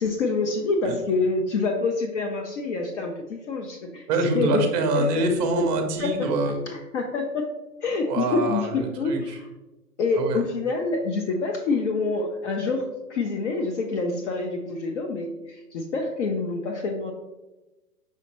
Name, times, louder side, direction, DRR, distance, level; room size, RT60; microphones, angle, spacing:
voice 1, 0.0-4.0 4.3-4.7 4.9-5.1 5.6-5.7 6.0-6.1 6.7-7.5 7.8-9.4 10.0-17.1, left 3 dB, 50° left, 3 dB, 0.6 m, -26 dB
voice 2, 4.1-6.6 8.1-9.4 10.2-10.4, right 2 dB, 25° right, 5 dB, 0.6 m, -25 dB
5.6 x 3.0 x 2.9 m, 1.0 s
hypercardioid pair, 130°, 48 cm